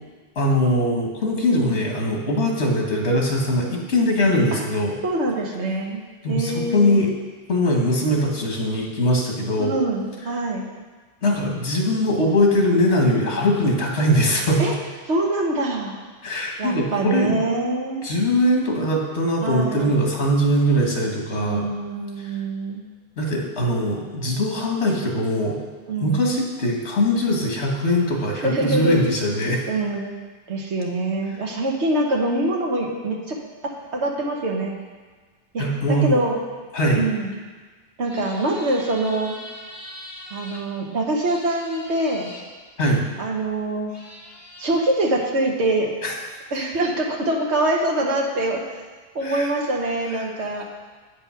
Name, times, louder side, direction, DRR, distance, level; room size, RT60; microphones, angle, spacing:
voice 1, 0.3-4.9 6.2-7.1 7.5-9.8 11.2-14.6 16.2-17.4 18.0-21.7 22.2-22.3 23.2-25.6 26.0-29.6 35.6-36.2 36.7-37.0 42.8-43.0 46.0-46.1 49.2-49.5 50.2-50.3, left 1 dB, 80° left, 0 dB, 1.7 m, -21 dB
voice 2, 5.0-7.0 9.6-10.7 14.6-14.7 15.1-16.0 16.6-18.1 19.4-20.0 21.3-22.8 25.9-26.2 28.4-29.0 29.7-30.1 30.5-33.4 33.6-34.7 35.5-36.4 36.9-37.3 38.0-39.4 40.3-42.3 43.2-43.9 44.6-45.9 46.5-48.6 49.1-50.6, right 2 dB, 90° right, -1 dB, 1.4 m, -24 dB
sound 1, 38.0-40.6 41.2-42.4 43.5-43.6 43.9-44.9, left 1 dB, 65° left, 1.7 m, -41 dB
8.9 x 5.4 x 5.6 m, 1.4 s
omnidirectional pair, 1.1 m